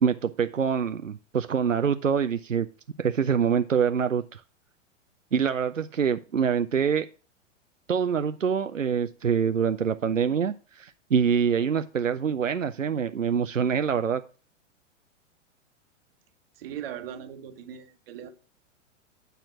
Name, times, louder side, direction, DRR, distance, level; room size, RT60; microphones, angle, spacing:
voice 1, 0.0-2.7 3.0-4.4 5.3-7.1 7.9-14.2, right 7 dB, 90° right, 0.5 m, -25 dB
voice 2, 16.6-18.3, right 9 dB, 50° right, 1.2 m, -39 dB
9.1 x 4.4 x 6.0 m
figure-of-eight pair, 100°, 38 cm